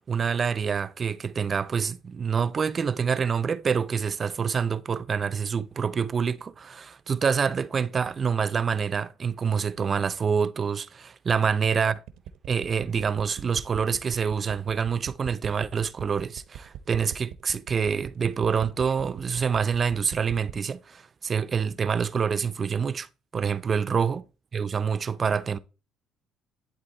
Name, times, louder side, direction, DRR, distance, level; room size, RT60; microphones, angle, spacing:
voice 1, 0.0-12.0 12.5-23.1 23.3-24.2 24.5-25.6, right 6 dB, 35° right, 0.5 m, -26 dB
sound 1, 12.1-20.6, right 12 dB, 75° right, 0.7 m, -40 dB
11.0 x 3.7 x 4.1 m
cardioid pair, 105°, 0 cm